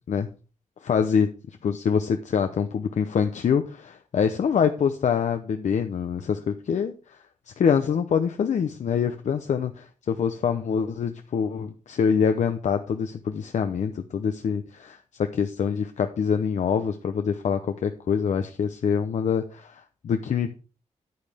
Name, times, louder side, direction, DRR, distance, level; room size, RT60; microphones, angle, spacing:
voice 1, 0.8-1.3 1.6-7.2 7.6-15.0 15.3-20.5, left 7 dB, 65° left, 8 dB, 0.7 m, -25 dB
9.5 x 8.8 x 3.5 m, 0.35 s
wide cardioid pair, 125°, 13 cm